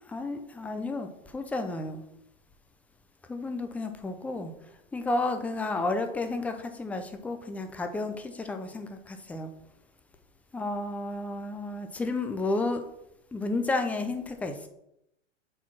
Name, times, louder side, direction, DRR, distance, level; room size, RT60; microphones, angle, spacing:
voice 1, 0.0-2.0 3.3-4.5 4.9-9.5 10.5-12.8 13.3-14.7, left 2 dB, 5° left, 7 dB, 0.4 m, -32 dB
6.2 x 4.4 x 5.9 m, 0.82 s
hypercardioid pair, 120°, 38 cm